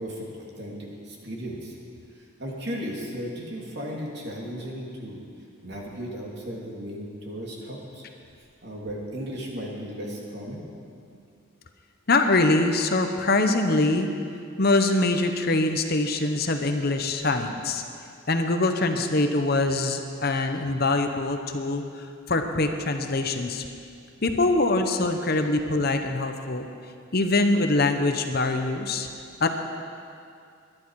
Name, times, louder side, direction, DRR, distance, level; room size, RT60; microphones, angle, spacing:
voice 1, 0.0-1.7 2.1-5.2 5.6-8.0 8.6-10.7 18.9-19.0, equal, 55° right, -2 dB, 2.6 m, -35 dB
voice 2, 12.1-14.1 14.6-17.8 18.3-23.6 24.2-26.7 27.1-29.1 29.4-29.5, left 2 dB, 50° left, 6 dB, 0.9 m, -23 dB
21.5 x 11.0 x 4.8 m, 2.4 s
head